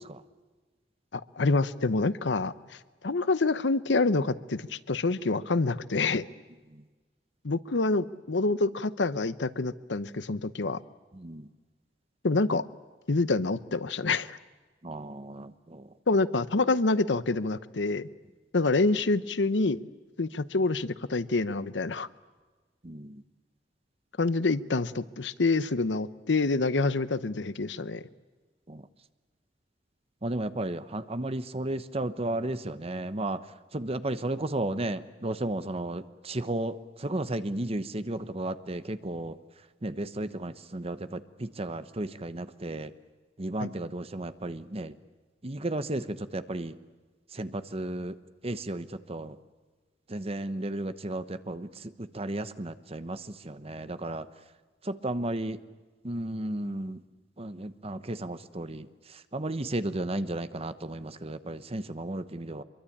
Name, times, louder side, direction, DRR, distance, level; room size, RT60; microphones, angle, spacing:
voice 1, 1.1-2.8 3.0-6.3 7.4-10.8 12.2-12.7 13.1-14.4 16.1-18.1 18.5-19.8 20.2-22.1 24.2-28.0 43.6-43.7, left 3 dB, 90° left, 15 dB, 0.9 m, -27 dB
voice 2, 14.8-15.5 22.8-23.2 28.7-28.8 30.2-33.4 33.7-36.8 37.0-39.3 39.8-42.9 43.4-44.9 45.4-46.7 47.4-48.1 48.4-49.3 50.1-51.7 52.1-53.2 53.4-54.2 54.9-55.6 56.0-57.0 57.4-58.9 59.3-62.6, right 1 dB, 35° right, 12 dB, 1.0 m, -33 dB
25.5 x 23.0 x 8.7 m, 1.3 s
head